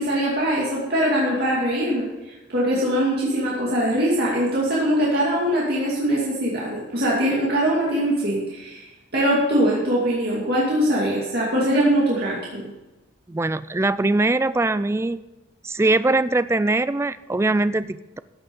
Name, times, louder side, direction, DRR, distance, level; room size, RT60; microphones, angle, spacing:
voice 1, 0.0-8.8 9.1-12.6, equal, 55° right, -6 dB, 2.5 m, -22 dB
voice 2, 13.3-15.2 15.6-18.2, right 2 dB, 15° right, 14 dB, 0.3 m, -22 dB
14.0 x 8.0 x 5.4 m, 1.1 s
head